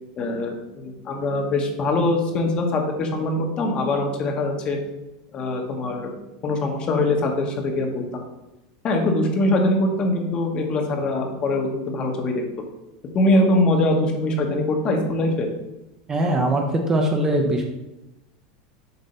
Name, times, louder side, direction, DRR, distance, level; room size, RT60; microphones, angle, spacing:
voice 1, 0.2-4.8 5.3-6.2 6.4-8.2 8.8-12.4 13.1-15.5, left 2 dB, 30° left, 2 dB, 1.0 m, -22 dB
voice 2, 16.1-17.6, right 1 dB, 15° right, 3 dB, 0.6 m, -21 dB
6.8 x 2.7 x 5.4 m, 0.98 s
supercardioid pair, 150°, 4 cm